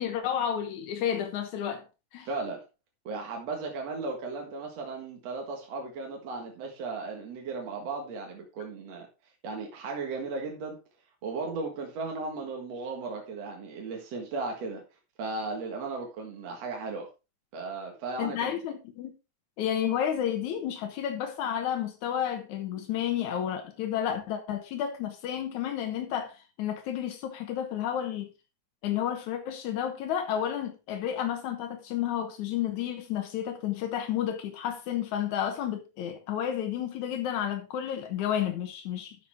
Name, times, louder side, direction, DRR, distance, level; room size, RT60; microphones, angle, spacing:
voice 1, 0.0-1.8 2.1-2.3 18.2-19.1 19.6-28.3 28.8-39.2, left 10 dB, 85° left, 2.5 m, -31 dB
voice 2, 2.3-2.6 3.0-9.1 9.4-10.8 11.2-14.8 15.2-17.1 17.5-18.5, right 3 dB, 60° right, 2.8 m, -36 dB
11.0 x 7.2 x 3.5 m
omnidirectional pair, 3.4 m